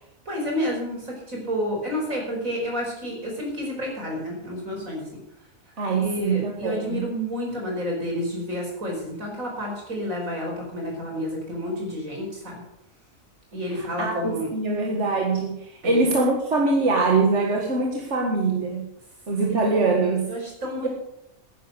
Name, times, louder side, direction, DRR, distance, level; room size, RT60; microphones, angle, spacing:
voice 1, 0.3-5.1 5.9-12.6 13.5-14.5 15.8-16.0 19.5-19.6 20.3-20.9, equal, 80° right, -1 dB, 5.6 m, -30 dB
voice 2, 5.8-7.0 13.7-18.8 19.3-20.3 20.8-20.9, right 3 dB, 60° right, 0 dB, 2.0 m, -23 dB
10.5 x 10.0 x 7.9 m, 0.82 s
omnidirectional pair, 1.4 m